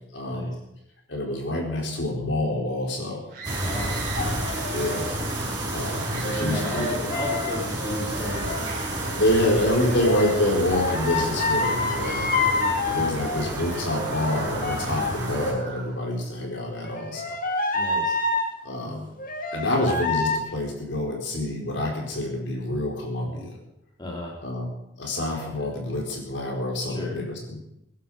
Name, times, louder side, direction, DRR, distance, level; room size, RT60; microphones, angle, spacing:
voice 1, 0.1-0.5 1.1-3.2 4.7-7.1 9.0-12.3 12.9-17.4 18.6-19.1 19.5-23.6 24.4-24.7 25.0-27.6, left 1 dB, 70° left, 0 dB, 4.7 m, -27 dB
sound 1, 3.3-4.3 6.0-7.0 8.2-9.8 11.0-12.7 13.8-16.0, right 3 dB, 50° right, 3.7 m, -39 dB
sound 2, 3.4-15.5, right 1 dB, 20° right, 5.3 m, -31 dB
voice 2, 3.6-4.0 6.2-8.7 12.3-12.5 17.7-18.2 24.0-24.3 25.6-25.7 26.9-27.2, left 1 dB, 20° left, -2 dB, 3.0 m, -34 dB
sound 3, 4.2-5.1 6.2-8.6 9.7-15.7 16.8-18.5 19.2-20.4, left 3 dB, 45° left, 1.9 m, -28 dB
22.5 x 11.5 x 5.2 m, 0.83 s
head